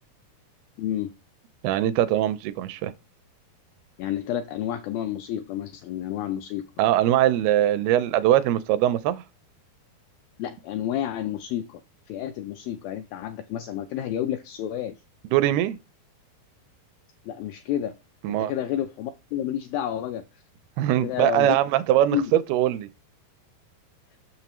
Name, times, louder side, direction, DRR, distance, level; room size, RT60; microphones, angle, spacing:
voice 1, 0.8-1.1 4.0-6.7 10.4-11.8 12.1-15.0 17.3-17.9 18.3-20.2 21.0-21.6 22.1-22.3, left 11 dB, 85° left, 2.0 m, -30 dB
voice 2, 1.6-2.9 6.8-9.2 15.3-15.8 18.2-18.5 20.8-22.9, right 13 dB, 85° right, 2.4 m, -22 dB
6.8 x 6.4 x 2.9 m
omnidirectional pair, 4.6 m